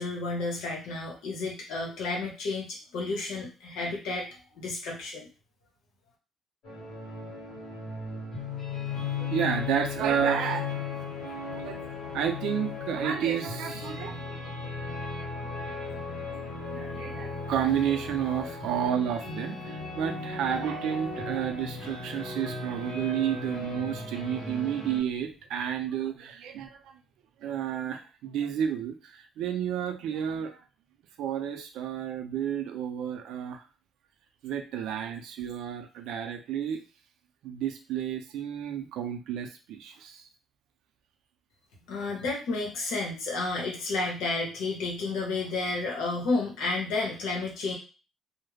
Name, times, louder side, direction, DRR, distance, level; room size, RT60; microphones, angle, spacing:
voice 1, 0.0-4.3 4.5-5.3 41.9-47.8, left 3 dB, 85° left, -2 dB, 0.8 m, -31 dB
sound 1, 6.6-25.0, left 4 dB, 50° left, 1.2 m, -36 dB
voice 2, 8.9-10.9 11.4-11.9 12.1-14.2 16.1-16.2 16.6-27.0 27.4-30.6 31.2-33.6 34.4-36.8 37.4-40.2 44.0-44.1, right 9 dB, 75° right, 5 dB, 0.4 m, -31 dB
2.3 x 2.0 x 3.2 m, 0.33 s
cardioid pair, 175°, 0 cm